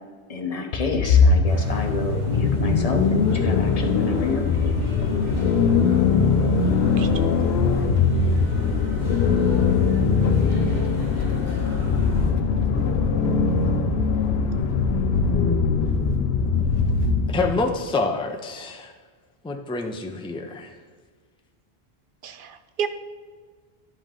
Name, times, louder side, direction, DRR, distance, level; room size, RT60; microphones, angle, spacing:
voice 1, 0.3-4.7, left 3 dB, 40° left, 4 dB, 0.9 m, -29 dB
sound 1, 0.7-17.6, left 5 dB, 80° left, 0.9 m, -21 dB
sound 2, 1.4-12.3, right 1 dB, 45° right, 1.7 m, -39 dB
voice 2, 7.0-7.3 7.7-8.2 22.2-22.9, right 8 dB, 65° right, 10 dB, 0.7 m, -33 dB
voice 3, 17.3-18.9 19.4-20.7, left 3 dB, 5° left, 4 dB, 0.4 m, -27 dB
11.0 x 5.2 x 3.7 m, 1.5 s
omnidirectional pair, 1.0 m